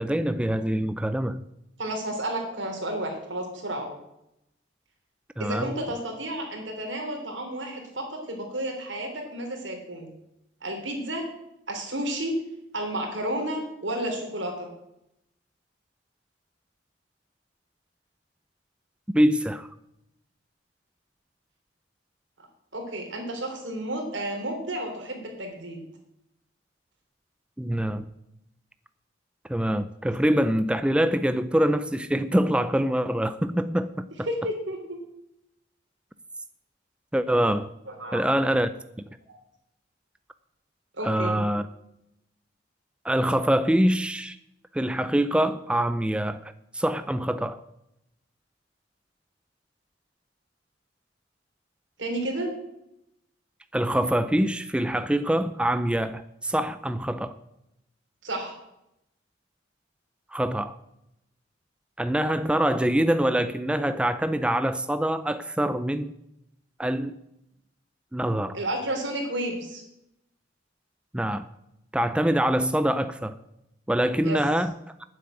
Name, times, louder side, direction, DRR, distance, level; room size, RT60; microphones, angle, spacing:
voice 1, 0.0-1.4 5.4-5.7 19.1-19.7 27.6-28.1 29.5-34.1 37.1-37.7 38.1-38.7 41.0-41.7 43.0-44.4 44.7-47.6 53.7-57.3 60.3-60.7 62.0-66.1 66.8-67.2 68.1-68.6 71.1-71.5 71.9-73.4 73.9-74.7, right 1 dB, 5° right, 11 dB, 0.3 m, -24 dB
voice 2, 1.8-3.9 5.4-10.1 10.6-11.3 11.7-12.4 12.7-14.7 22.7-25.8 34.3-35.0 37.9-38.2 41.0-41.4 52.0-52.5 58.2-58.6 68.5-69.8 74.2-74.4, right 1 dB, 80° right, 2 dB, 3.4 m, -31 dB
9.4 x 7.7 x 8.7 m, 0.85 s
head